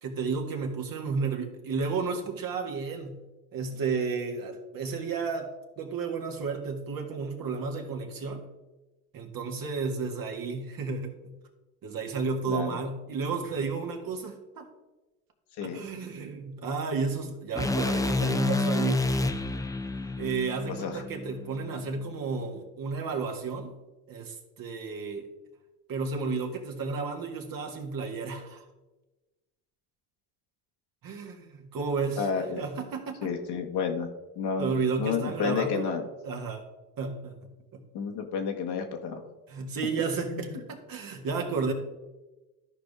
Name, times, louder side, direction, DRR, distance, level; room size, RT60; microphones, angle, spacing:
voice 1, 0.0-3.2 3.5-5.5 5.8-8.5 9.1-11.3 11.8-14.7 15.6-19.6 20.2-23.8 24.1-25.3 25.9-28.6 31.0-32.3 32.6-33.3 34.6-35.9 36.2-36.7 37.0-37.4 37.7-37.8 39.5-41.7, right 4 dB, 50° right, 3 dB, 1.8 m, -32 dB
voice 2, 12.5-12.8 15.6-15.8 20.7-21.0 32.2-32.6 33.2-34.1 34.3-36.1 37.9-39.2 40.3-40.6, left 6 dB, 65° left, 4 dB, 1.5 m, -31 dB
sound 1, 17.6-21.7, left 3 dB, 10° left, 0.6 m, -29 dB
13.5 x 5.2 x 3.6 m, 1.1 s
hypercardioid pair, 65°, 44 cm